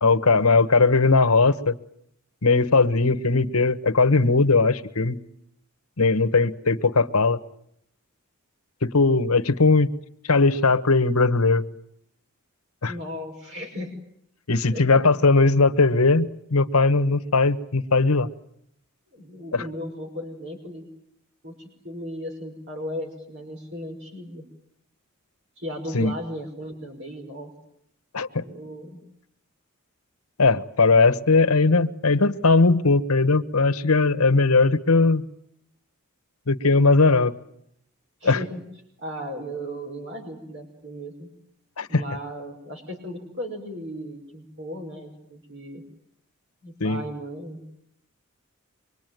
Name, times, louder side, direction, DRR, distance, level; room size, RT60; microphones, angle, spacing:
voice 1, 0.0-1.7 2.4-5.2 6.0-7.4 8.8-9.9 10.2-11.6 12.8-12.9 14.5-18.3 19.5-19.6 25.9-26.1 28.1-28.4 30.4-35.2 36.5-37.3 38.2-38.4 41.8-42.0 46.8-47.0, left 3 dB, 80° left, 11 dB, 1.2 m, -19 dB
voice 2, 12.9-13.9 14.7-15.1 19.1-20.9 21.4-24.4 25.6-27.5 28.4-29.0 38.2-38.6 39.0-41.3 41.9-45.8 46.6-47.6, equal, 55° right, 2 dB, 5.7 m, -36 dB
25.5 x 23.0 x 9.3 m, 0.72 s
head